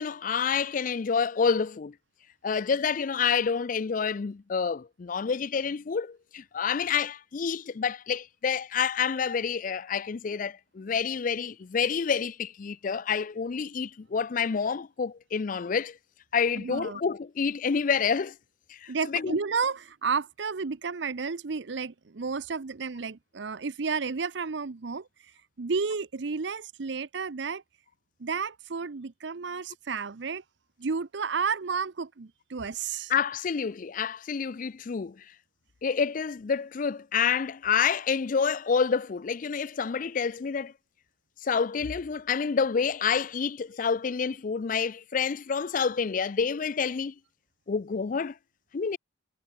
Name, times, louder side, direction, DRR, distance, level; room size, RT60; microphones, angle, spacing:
voice 1, 0.0-1.9 2.4-16.0 16.3-18.3 18.7-19.3 33.1-35.2 35.8-40.7 41.4-47.1 47.7-48.4 48.7-49.0, left 6 dB, 45° left, 0.4 m, -28 dB
voice 2, 16.6-17.0 18.9-25.1 25.6-27.6 28.2-30.4 30.8-33.1, right 5 dB, 65° right, 0.7 m, -32 dB
head